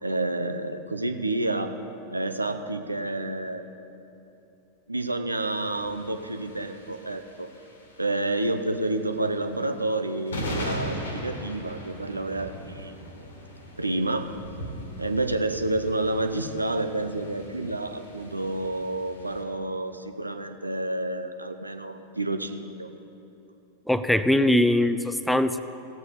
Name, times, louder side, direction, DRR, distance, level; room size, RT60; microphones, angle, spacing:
voice 1, 0.0-1.7 2.1-3.7 4.9-7.5 8.0-13.0 13.8-14.3 15.0-22.9, right 2 dB, 85° right, 7 dB, 0.6 m, -29 dB
sound 1, 5.4-19.4, equal, 70° left, 1.7 m, -39 dB
voice 2, 23.9-25.6, left 1 dB, ahead, 12 dB, 0.4 m, -21 dB
17.0 x 8.0 x 4.0 m, 2.8 s
figure-of-eight pair, 90°, 0 cm